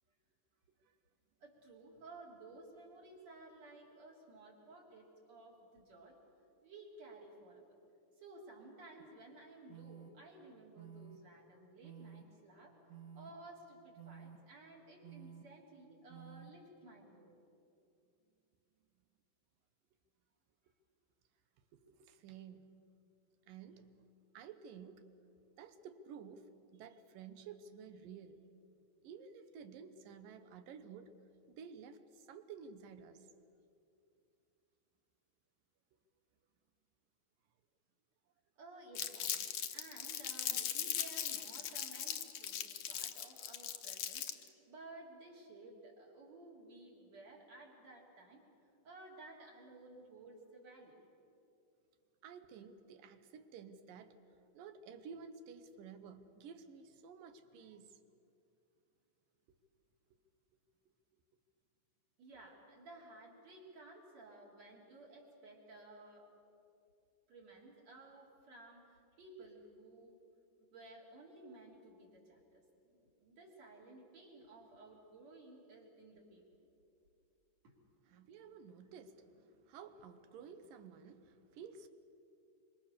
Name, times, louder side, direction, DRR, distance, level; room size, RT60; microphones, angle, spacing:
voice 1, 1.4-6.2 6.6-7.8 8.2-12.8 13.1-17.3 38.6-48.4 48.8-51.0 62.2-66.3 67.3-70.2 70.6-76.5 77.6-77.8, right 2 dB, 50° right, 4.8 m, -56 dB
sound 1, 9.0-9.1 9.7-10.1 10.8-11.2 11.8-12.2 12.9-13.3 14.0-14.4 15.0-15.4 16.1-16.5, right 8 dB, 30° right, 2.1 m, -52 dB
voice 2, 21.7-22.7 23.5-23.9 24.3-25.1 25.6-28.4 29.0-31.1 31.5-33.3 52.2-54.2 54.5-58.0 78.1-81.9, right 6 dB, 75° right, 2.8 m, -53 dB
Crumpling crinkling, 39.0-44.5, left 10 dB, 65° left, 2.0 m, -39 dB
26.5 x 25.5 x 6.8 m
omnidirectional pair, 4.0 m